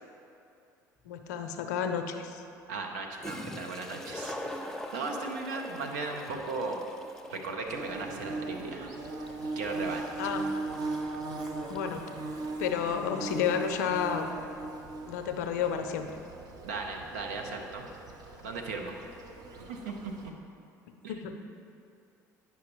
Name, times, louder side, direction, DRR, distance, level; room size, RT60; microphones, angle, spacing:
voice 1, 1.0-2.4 10.2-10.4 11.7-12.0 12.6-14.4 15.1-16.1 21.1-21.4, left 7 dB, 80° left, 7 dB, 0.5 m, -31 dB
Toilet flush, 1.2-1.3 2.9-3.0 3.2-12.6, left 1 dB, 5° left, 0.7 m, -44 dB
voice 2, 2.7-4.4 4.9-6.8 7.3-8.9 9.6-10.4 16.6-17.9 18.4-19.0 19.6-20.3 21.0-21.1, right 3 dB, 80° right, 2 dB, 0.8 m, -37 dB
Bird / Buzz, 7.7-20.3, right 3 dB, 45° right, 0.9 m, -39 dB
9.5 x 5.5 x 3.0 m, 2.6 s
hypercardioid pair, 65°, 9 cm